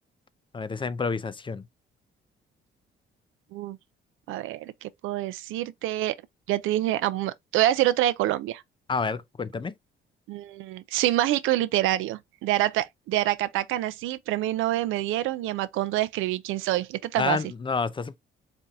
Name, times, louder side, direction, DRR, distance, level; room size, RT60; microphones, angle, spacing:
voice 1, 0.5-1.6 8.9-9.7 17.2-18.2, left 4 dB, 25° left, 0.5 m, -29 dB
voice 2, 4.3-6.2 6.5-8.6 10.3-17.4, right 14 dB, 90° right, 0.4 m, -26 dB
4.3 x 2.6 x 3.5 m
cardioid pair, 90°, 20 cm